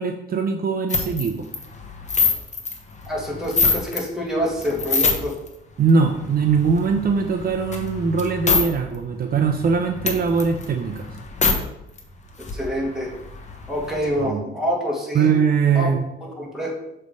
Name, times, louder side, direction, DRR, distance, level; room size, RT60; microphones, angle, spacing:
voice 1, 0.0-1.5 5.8-11.1 14.2-14.4 15.1-16.0, right 5 dB, 50° right, 5 dB, 0.6 m, -21 dB
sound 1, 0.9-4.1 4.4-5.5 5.9-8.7 8.9-9.0 9.3-11.6 12.0-12.1 12.3-14.3, left 4 dB, 35° left, 1.1 m, -25 dB
voice 2, 3.1-5.3 12.5-13.1 13.7-15.3 15.7-15.9 16.2-16.7, equal, ahead, -3 dB, 2.2 m, -26 dB
6.7 x 3.3 x 5.2 m, 0.86 s
cardioid pair, 90°, 20 cm